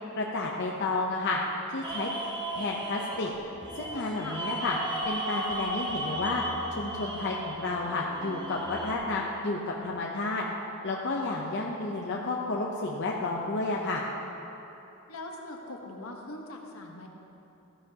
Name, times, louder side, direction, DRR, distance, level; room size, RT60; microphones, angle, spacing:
voice 1, 0.1-1.4 1.7-2.1 2.5-3.3 3.7-4.8 5.1-6.4 6.8-10.4 10.8-14.0, left 3 dB, 55° left, -2 dB, 0.7 m, -31 dB
sound 1, 1.8-8.9, right 1 dB, 20° right, 0.8 m, -35 dB
voice 2, 15.1-17.1, left 2 dB, 75° left, 1 dB, 1.2 m, -41 dB
14.5 x 10.0 x 2.9 m, 2.9 s
head